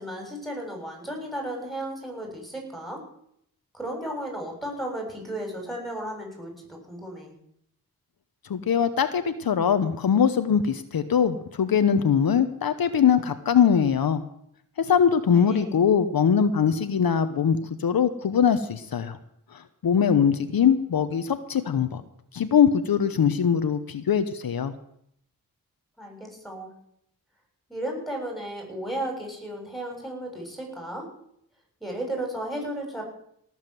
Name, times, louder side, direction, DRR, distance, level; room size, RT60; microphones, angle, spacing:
voice 1, 0.0-3.0 3.7-7.3 15.3-15.7 26.0-26.7 27.7-31.1 31.8-33.0, right 1 dB, ahead, 2 dB, 7.1 m, -34 dB
voice 2, 8.5-14.2 14.8-19.2 19.5-22.0 22.3-24.7, left 7 dB, 75° left, 10 dB, 1.0 m, -22 dB
18.0 x 7.4 x 7.6 m, 0.72 s
cardioid pair, 60°, 36 cm